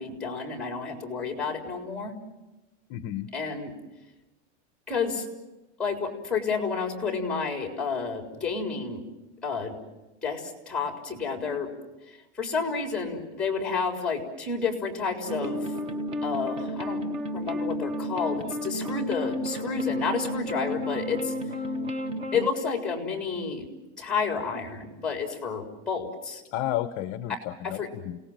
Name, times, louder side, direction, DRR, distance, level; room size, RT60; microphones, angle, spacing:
voice 1, 0.0-2.2 3.3-3.7 4.9-5.3 5.8-9.0 9.4-9.8 10.2-11.7 12.1-15.7 16.2-17.0 17.3-21.3 22.3-23.7 24.0-26.4 27.3-27.9, left 5 dB, 5° left, 3 dB, 3.9 m, -30 dB
voice 2, 2.9-3.3 26.5-28.2, left 12 dB, 35° left, 12 dB, 0.7 m, -32 dB
sound 1, 15.3-22.5, equal, 15° right, 0.8 m, -32 dB
30.0 x 18.5 x 7.4 m, 1.1 s
supercardioid pair, 165°, 36 cm